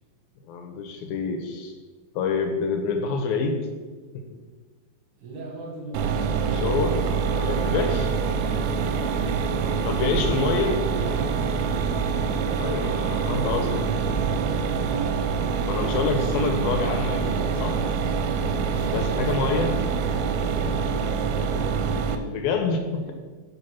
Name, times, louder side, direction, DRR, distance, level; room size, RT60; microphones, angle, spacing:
voice 1, 0.5-1.7 2.2-3.6 4.1-4.2 6.5-7.0 7.4-8.1 9.9-10.8 12.6-13.9 15.7-17.8 18.9-19.8 22.2-23.1, left 5 dB, 80° left, 4 dB, 2.5 m, -27 dB
voice 2, 5.1-6.7 7.0-10.4 18.6-19.8 20.4-22.4 22.9-23.1, right 2 dB, 60° right, -2 dB, 3.0 m, -41 dB
Mechanisms, 5.9-22.2, right 6 dB, 90° right, 2.5 m, -25 dB
sound 1, 14.7-14.8 15.2-15.5 16.1-16.7 17.0-17.3 18.0-19.5, equal, 25° left, 1.8 m, -43 dB
6.7 x 5.4 x 5.6 m, 1.4 s
omnidirectional pair, 4.4 m